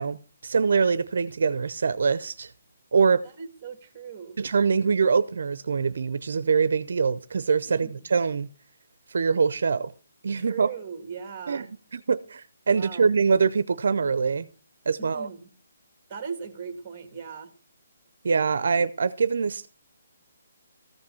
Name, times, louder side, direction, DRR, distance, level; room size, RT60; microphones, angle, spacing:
voice 1, 0.0-2.5 2.9-3.2 4.4-8.5 9.1-9.9 10.2-10.7 11.5-11.7 11.9-14.5 14.9-15.3 18.2-19.7, right 5 dB, 60° right, 0.6 m, -24 dB
voice 2, 3.2-4.4 7.8-8.0 10.4-11.7 12.7-13.1 15.0-15.5 16.1-17.5, right 6 dB, 15° right, 1.7 m, -38 dB
14.5 x 5.4 x 7.0 m
hypercardioid pair, 175°, 0 cm